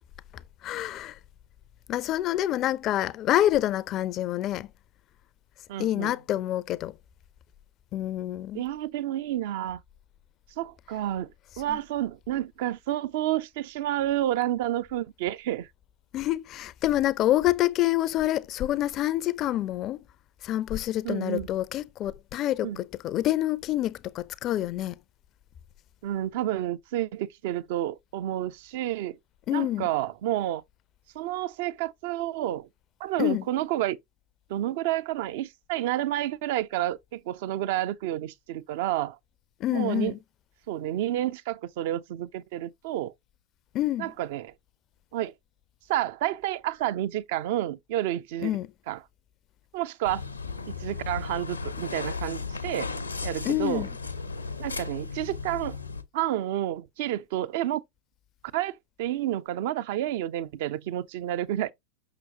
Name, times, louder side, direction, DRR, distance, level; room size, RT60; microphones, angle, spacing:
voice 1, 0.6-1.2 1.9-4.7 5.8-6.9 7.9-8.6 11.7-11.8 16.1-20.0 20.4-25.0 29.5-29.9 33.2-33.4 39.6-40.2 43.7-44.1 48.4-48.7 53.4-53.9, left 13 dB, 35° left, 0.5 m, -27 dB
voice 2, 5.7-6.1 8.5-9.8 10.6-11.3 11.6-15.7 21.0-21.5 22.6-22.8 26.0-29.2 29.5-30.6 31.1-32.7 33.0-34.0 34.5-39.2 39.7-40.1 40.7-43.1 44.0-44.5 45.1-45.3 45.9-48.5 48.9-49.0 49.7-50.2 50.7-52.9 53.2-53.8 54.6-55.8 56.1-57.8 58.5-61.7, right 13 dB, 50° right, 0.6 m, -30 dB
sound 1, 50.0-56.0, left 4 dB, 80° left, 0.9 m, -35 dB
6.8 x 6.2 x 2.8 m
figure-of-eight pair, 90°, 0 cm